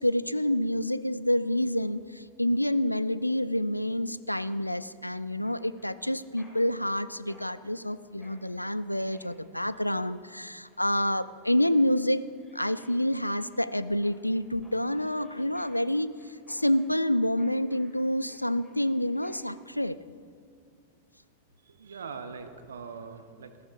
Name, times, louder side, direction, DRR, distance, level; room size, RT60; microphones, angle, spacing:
voice 1, 0.0-12.2 12.5-16.2 16.5-20.0, left 1 dB, 90° left, 16 dB, 0.3 m, -28 dB
Mechanisms, 5.4-19.6, left 1 dB, 20° left, 3.4 m, -61 dB
voice 2, 21.6-23.7, right 5 dB, 70° right, 10 dB, 0.8 m, -42 dB
14.0 x 13.5 x 3.8 m, 2.3 s
figure-of-eight pair, 90°, 0 cm